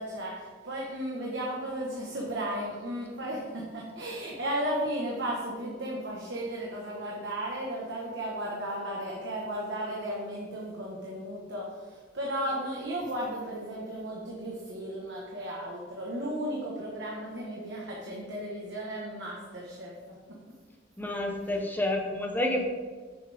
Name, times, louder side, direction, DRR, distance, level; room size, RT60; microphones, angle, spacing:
voice 1, 0.0-19.9, right 1 dB, 70° right, -3 dB, 1.4 m, -35 dB
voice 2, 21.0-22.6, left 1 dB, 10° left, 1 dB, 0.9 m, -29 dB
9.4 x 7.2 x 3.5 m, 1.5 s
head